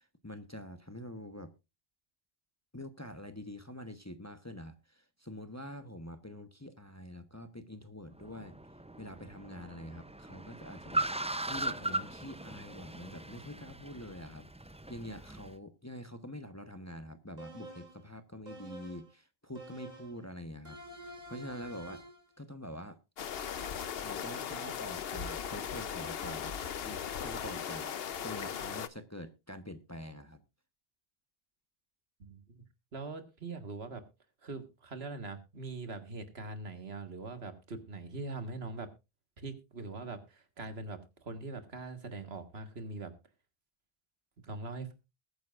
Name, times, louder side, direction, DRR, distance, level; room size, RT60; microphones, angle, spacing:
voice 1, 0.0-1.5 2.7-8.6 9.0-22.0 22.4-23.0 24.0-27.9 28.2-30.4, left 1 dB, 15° left, 0.9 m, -46 dB
Car, 8.1-15.5, right 1 dB, 10° right, 0.4 m, -39 dB
sound 1, 17.4-18.0 18.5-19.1 19.6-20.2 20.7-22.3, right 1 dB, 45° right, 3.0 m, -48 dB
sound 2, 23.2-28.9, left 8 dB, 70° left, 1.0 m, -38 dB
voice 2, 32.2-32.6 32.9-34.0 34.4-38.9 39.4-43.1 44.4-44.9, right 3 dB, 75° right, 1.9 m, -42 dB
20.5 x 9.3 x 2.5 m
omnidirectional pair, 1.0 m